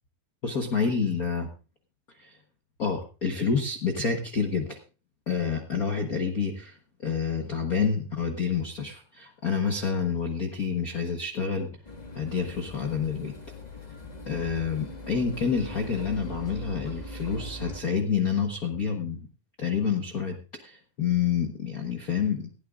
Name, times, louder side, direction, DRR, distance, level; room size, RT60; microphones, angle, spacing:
voice 1, 0.4-1.5 2.2-2.4 2.8-4.8 5.3-11.8 12.1-13.3 14.3-19.2 19.6-22.5, left 6 dB, 80° left, 3 dB, 0.8 m, -28 dB
sound 1, 11.8-17.8, left 1 dB, 45° left, 0.5 m, -41 dB
18.5 x 16.0 x 2.5 m, 0.34 s
omnidirectional pair, 3.9 m